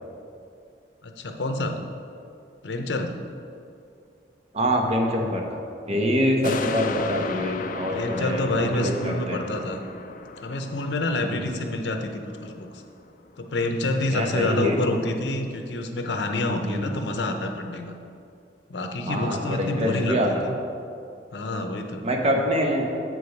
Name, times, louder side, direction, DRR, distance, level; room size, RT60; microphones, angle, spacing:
voice 1, 1.0-1.8 2.6-3.1 7.9-9.8 10.4-12.7 13.4-17.9 18.7-20.5 21.3-22.0, left 2 dB, 80° left, 5 dB, 0.7 m, -28 dB
voice 2, 4.5-5.6 5.9-9.4 11.2-11.5 14.1-14.8 16.6-17.0 19.1-20.3 22.0-22.9, equal, 35° right, 1 dB, 0.9 m, -25 dB
sound 1, 6.4-13.1 13.5-13.6, left 4 dB, 50° left, 0.4 m, -35 dB
7.7 x 4.9 x 5.3 m, 2.5 s
head